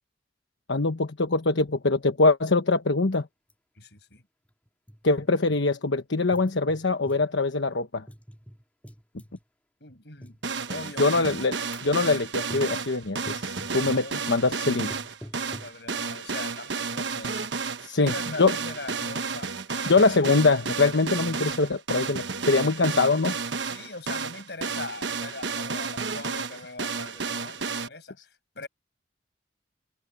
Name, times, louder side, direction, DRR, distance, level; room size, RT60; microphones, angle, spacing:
voice 1, 0.7-3.3 5.0-8.0 11.0-11.5 11.8-14.9 17.8-18.1 18.4-18.5 19.9-23.4, left 3 dB, 90° left, 1.2 m, -23 dB
sound 1, 3.1-3.2 3.5-3.6 4.4-5.6 6.3-7.3 8.1-9.4 10.2-10.4 11.2-11.4 11.7-12.0 12.5-12.8 13.2-14.1 14.9-15.8, equal, 10° left, 4.1 m, -45 dB
voice 2, 3.8-4.2 9.8-10.4 10.7-11.4 12.0-12.2 13.9-14.2 15.2-17.5 18.0-20.1 23.6-28.7, left 3 dB, 65° left, 7.7 m, -41 dB
sound 2, 10.4-27.9, right 5 dB, 80° right, 1.2 m, -32 dB
head